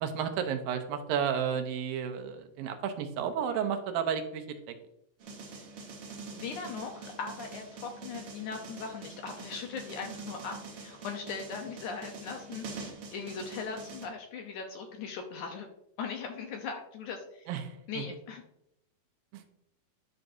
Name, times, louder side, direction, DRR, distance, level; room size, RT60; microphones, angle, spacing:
voice 1, 0.0-4.8 17.5-18.2 19.3-19.4, right 8 dB, 80° right, 6 dB, 2.6 m, -32 dB
sound 1, 5.2-14.1, right 4 dB, 55° right, 1.7 m, -45 dB
voice 2, 6.3-15.7 16.0-17.5 17.9-18.4, left 5 dB, 75° left, 3 dB, 1.9 m, -39 dB
11.0 x 6.4 x 2.6 m, 0.79 s
omnidirectional pair, 4.1 m